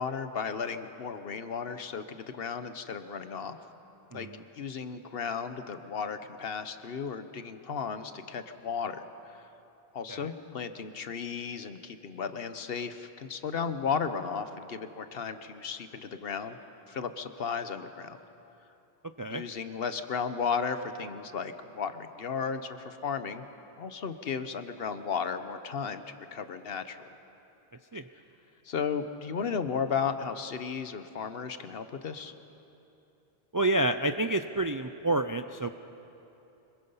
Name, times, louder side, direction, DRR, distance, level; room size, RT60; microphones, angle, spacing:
voice 1, 0.0-3.6 4.1-4.3 4.5-9.4 9.9-16.6 16.9-18.2 19.3-23.4 23.8-27.0 28.6-32.3, left 6 dB, 70° left, 10 dB, 1.1 m, -34 dB
voice 2, 4.1-4.4 10.1-10.3 19.2-19.4 27.9-28.1 33.5-35.7, right 2 dB, 35° right, 9 dB, 0.3 m, -29 dB
25.5 x 21.5 x 5.6 m, 2.9 s
omnidirectional pair, 1.0 m